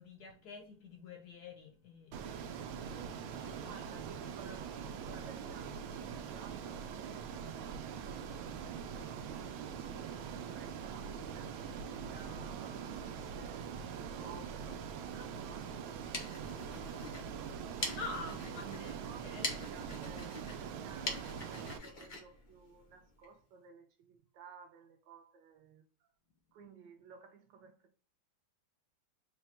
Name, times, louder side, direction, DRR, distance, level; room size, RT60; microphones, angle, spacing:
voice 1, 0.0-3.8 18.0-19.6, left 3 dB, 65° left, 1.0 m, -48 dB
Ocean, 2.1-21.8, right 7 dB, 90° right, 1.4 m, -43 dB
voice 2, 3.7-26.1 26.5-27.9, right 5 dB, 65° right, 1.4 m, -56 dB
sound 1, 15.9-23.3, left 2 dB, 85° left, 0.4 m, -44 dB
4.0 x 2.2 x 4.2 m
omnidirectional pair, 2.1 m